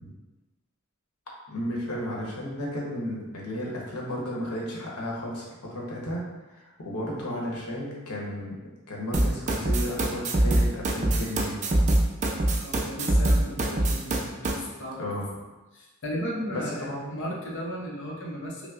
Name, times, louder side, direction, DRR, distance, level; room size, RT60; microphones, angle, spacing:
voice 1, 1.5-5.4 5.7-6.2 6.5-8.6 8.9-11.6 15.0-15.3 16.5-17.2, equal, 90° left, -3 dB, 1.0 m, -33 dB
sound 1, 9.1-14.5, right 1 dB, 30° right, 0.4 m, -23 dB
voice 2, 12.6-15.0 15.7-18.7, equal, 55° left, -2 dB, 0.7 m, -35 dB
5.5 x 2.1 x 2.4 m, 1.1 s
head